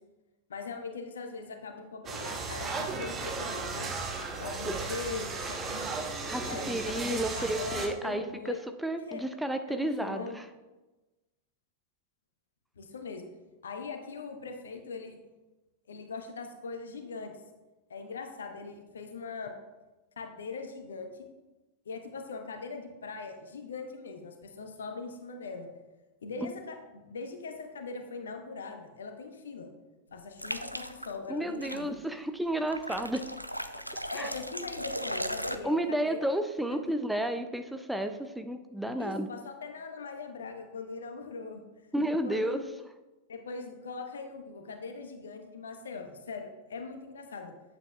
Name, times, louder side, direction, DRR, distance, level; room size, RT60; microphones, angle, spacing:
voice 1, 0.5-3.9 4.4-6.0 6.4-8.6 9.0-9.2 9.7-10.4 12.8-13.3 13.6-15.2 15.9-17.3 17.9-19.5 20.2-21.3 21.8-25.7 26.2-29.7 30.1-31.9 34.1-36.2 36.7-36.8 39.0-41.6 42.2-42.6 43.3-47.5, left 4 dB, 65° left, 5 dB, 0.9 m, -41 dB
sound 1, 2.1-7.9, right 4 dB, 25° right, 1.1 m, -35 dB
voice 2, 6.3-10.5 26.4-26.5 31.3-33.2 34.1-34.3 35.6-39.3 41.9-42.6, right 1 dB, 5° right, 7 dB, 0.4 m, -32 dB
sound 2, 30.4-31.1 31.6-31.8 32.7-35.6, equal, 90° right, 0.4 m, -37 dB
9.2 x 8.0 x 2.3 m, 1.1 s
figure-of-eight pair, 90°, 0 cm